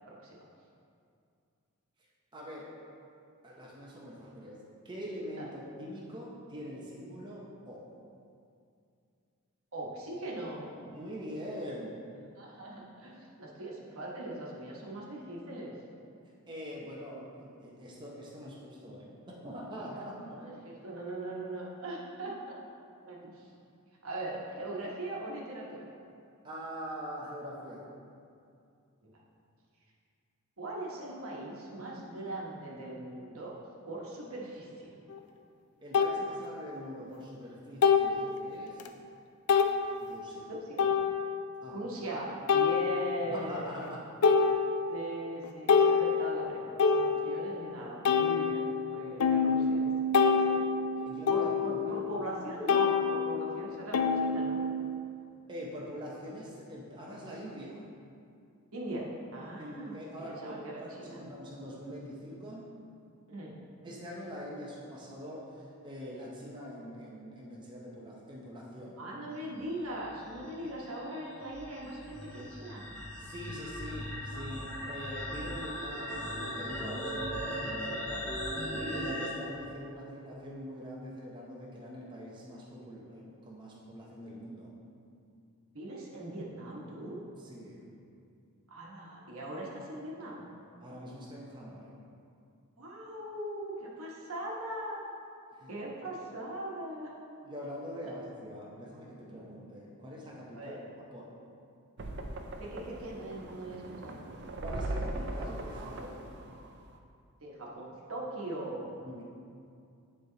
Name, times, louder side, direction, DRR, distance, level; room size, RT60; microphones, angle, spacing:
voice 1, 0.1-0.4 5.4-5.5 9.7-11.0 12.4-15.7 20.4-22.6 23.0-23.5 24.0-25.8 29.0-29.2 30.6-33.6 33.9-34.9 40.5-41.0 41.7-43.7 44.9-50.4 51.3-54.7 58.7-61.2 63.3-63.6 69.0-72.9 75.4-75.6 85.7-87.2 88.7-90.4 92.8-95.0 95.7-97.1 100.5-100.8 102.6-104.2 107.4-108.9, right 1 dB, 70° right, -3 dB, 1.2 m, -40 dB
voice 2, 2.3-2.7 3.4-7.8 10.9-12.1 16.5-20.5 22.3-22.4 26.4-27.9 35.8-38.8 40.0-40.5 41.6-41.8 43.2-44.1 51.1-52.0 55.5-57.8 59.6-62.7 63.8-69.0 69.3-69.5 70.6-70.7 73.2-78.3 78.7-84.7 87.4-87.9 90.8-91.9 95.6-95.7 97.4-100.8 101.1-101.4 104.6-106.2 109.0-109.2, equal, 20° right, -5 dB, 0.7 m, -43 dB
sound 1, 35.1-35.2 35.9-36.2 37.8-38.2 38.8-38.9 39.5-39.8 40.8-41.4 42.5-43.3 43.8-43.9 44.2-45.1 45.4-47.6 48.1-52.4 52.7-55.0, left 5 dB, 90° left, 0.4 m, -27 dB
sound 2, 70.0-79.3, equal, 5° left, 1.3 m, -38 dB
sound 3, 102.0-107.0, right 1 dB, 50° right, 0.5 m, -39 dB
9.8 x 3.3 x 3.9 m, 2.5 s
head